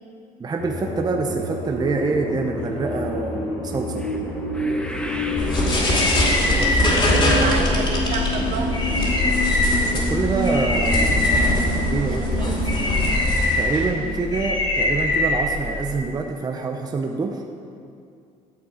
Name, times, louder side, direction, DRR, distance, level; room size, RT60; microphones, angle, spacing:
voice 1, 0.4-4.0 6.5-6.9 9.9-11.4 11.9-12.9 13.6-17.4, right 4 dB, 25° right, 3 dB, 0.6 m, -26 dB
sound 1, 0.6-13.1, left 1 dB, 80° left, 1.7 m, -28 dB
sound 2, 1.9-8.3 8.5-9.0 9.6-9.7 10.0-10.1, left 1 dB, 5° left, 0.9 m, -37 dB
sound 3, 5.4-16.0, left 1 dB, 35° left, 2.5 m, -21 dB
voice 2, 5.5-6.0 7.3-8.8 10.9-11.3 12.1-12.7 14.0-14.3, right 5 dB, 60° right, 3 dB, 1.1 m, -32 dB
9.1 x 6.9 x 4.9 m, 2.4 s
supercardioid pair, 85°, 15 cm